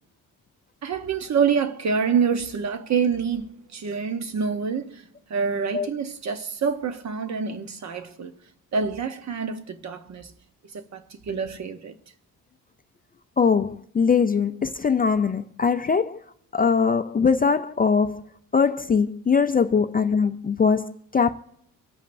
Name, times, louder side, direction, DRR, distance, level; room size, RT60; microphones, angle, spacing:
voice 1, 0.8-3.5 3.7-5.0 5.3-8.3 8.7-10.3 10.7-11.9, right 6 dB, 50° right, 0.9 m, -26 dB
voice 2, 13.4-16.2 16.5-18.2 18.5-21.3, left 5 dB, 25° left, 0.3 m, -21 dB
25.5 x 8.5 x 2.6 m
wide cardioid pair, 155°, 35 cm